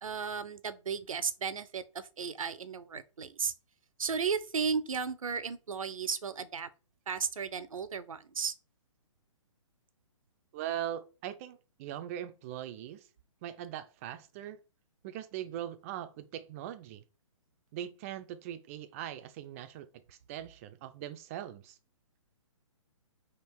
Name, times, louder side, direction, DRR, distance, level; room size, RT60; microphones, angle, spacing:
voice 1, 0.0-3.5 4.0-6.7 7.1-8.5, right 6 dB, 80° right, 0.6 m, -34 dB
voice 2, 10.5-13.1 13.4-14.6 15.0-17.0 17.7-21.8, right 11 dB, 25° right, 0.4 m, -41 dB
3.6 x 2.4 x 4.5 m
figure-of-eight pair, 135°, 17 cm